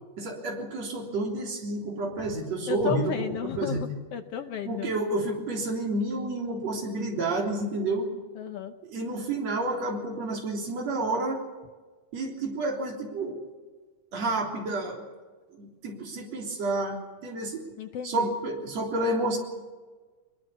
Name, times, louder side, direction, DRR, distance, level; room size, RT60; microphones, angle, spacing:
voice 1, 0.2-3.1 3.6-4.0 4.7-8.1 8.9-11.4 12.1-13.4 14.1-15.0 15.5-17.6 18.0-19.4, right 2 dB, 50° right, 1 dB, 4.6 m, -30 dB
voice 2, 2.7-4.9 8.3-8.7 17.8-18.3, left 9 dB, 80° left, 7 dB, 1.3 m, -33 dB
22.5 x 22.0 x 7.1 m, 1.4 s
omnidirectional pair, 3.8 m